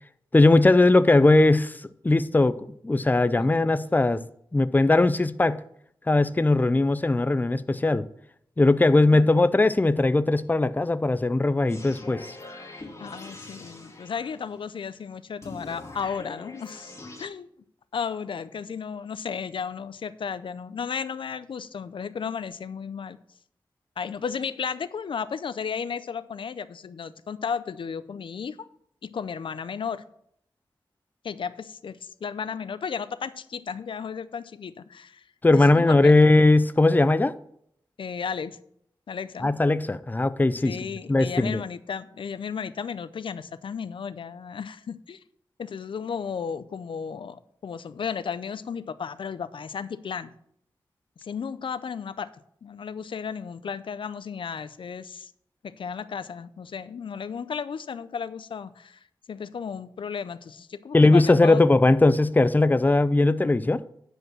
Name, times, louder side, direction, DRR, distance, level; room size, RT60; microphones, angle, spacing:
voice 1, 0.3-4.2 4.5-5.6 6.1-8.1 8.6-12.4 35.4-37.3 39.4-40.8 41.1-41.6 60.9-63.9, left 2 dB, 20° left, 0.5 m, -19 dB
sound 1, 11.7-14.7 15.4-17.3, left 2 dB, 35° left, 2.3 m, -43 dB
voice 2, 13.0-17.5 17.9-23.2 24.0-28.6 29.0-30.0 31.2-35.2 35.5-36.1 38.0-38.6 39.1-39.5 40.6-45.2 45.6-50.3 51.2-52.3 52.6-55.3 55.6-61.6, left 6 dB, 80° left, 0.5 m, -34 dB
9.4 x 5.2 x 6.3 m
wide cardioid pair, 75°, 9 cm